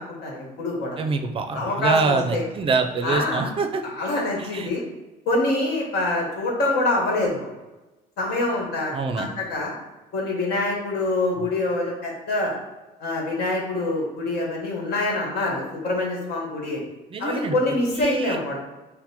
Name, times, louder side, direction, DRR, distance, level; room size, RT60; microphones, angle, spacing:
voice 1, 0.0-1.0 1.5-2.4 3.0-3.5 3.8-4.8 5.2-7.5 8.2-9.7 10.1-12.5 13.0-16.8 17.2-18.6, left 2 dB, 75° left, -2 dB, 1.3 m, -25 dB
voice 2, 1.0-3.8 4.4-4.7 8.9-9.3 11.4-11.5 17.1-17.6 17.9-18.4, right 4 dB, 30° right, 6 dB, 0.4 m, -25 dB
5.8 x 2.1 x 2.8 m, 1.1 s
cardioid pair, 110°, 17 cm